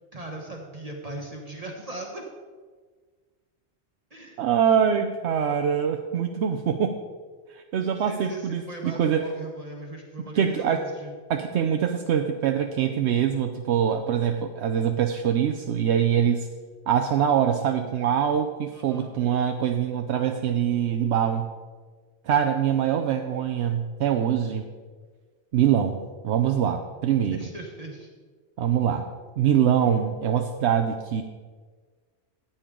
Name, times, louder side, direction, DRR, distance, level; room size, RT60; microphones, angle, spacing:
voice 1, 0.1-2.2 4.1-4.4 7.9-11.1 18.7-19.1 27.2-28.1, right 2 dB, 35° right, 0 dB, 1.3 m, -38 dB
voice 2, 4.4-7.0 7.5-9.3 10.3-10.8 11.3-16.5 16.9-21.5 22.3-24.6 25.5-27.5 28.6-29.1 29.4-31.2, right 8 dB, 75° right, 5 dB, 0.9 m, -24 dB
14.0 x 8.8 x 3.8 m, 1.5 s
omnidirectional pair, 1.2 m